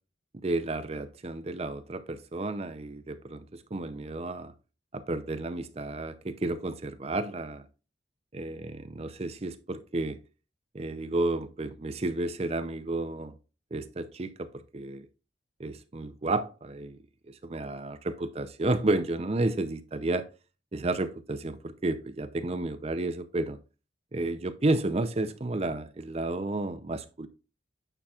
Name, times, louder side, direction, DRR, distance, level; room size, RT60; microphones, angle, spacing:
voice 1, 0.4-4.5 4.9-7.7 8.3-10.2 10.7-13.3 13.7-15.1 15.6-17.0 17.3-20.3 20.7-23.6 24.1-27.3, right 2 dB, 30° right, 0.5 m, -31 dB
8.9 x 5.6 x 2.4 m
head